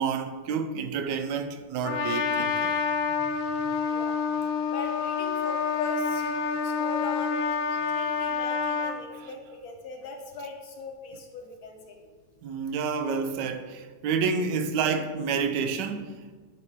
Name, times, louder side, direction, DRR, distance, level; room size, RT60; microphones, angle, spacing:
voice 1, 0.0-2.7 12.4-16.4, right 5 dB, 75° right, 1.2 m, -29 dB
Trumpet, 1.8-9.0, left 5 dB, 80° left, 1.4 m, -28 dB
voice 2, 2.9-12.0, left 3 dB, 55° left, 1.3 m, -40 dB
9.5 x 5.0 x 3.4 m
omnidirectional pair, 2.0 m